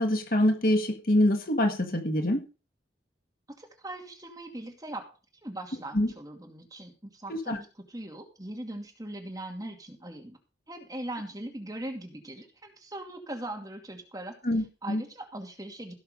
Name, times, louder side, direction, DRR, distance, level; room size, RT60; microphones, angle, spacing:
voice 1, 0.0-2.4 5.9-6.1 7.3-7.6 14.4-15.0, left 1 dB, 50° left, 5 dB, 1.6 m, -25 dB
voice 2, 3.6-5.0 5.4-10.4 10.7-14.4 14.8-15.9, right 1 dB, 20° right, 3 dB, 2.5 m, -40 dB
16.5 x 6.7 x 5.2 m, 0.33 s
head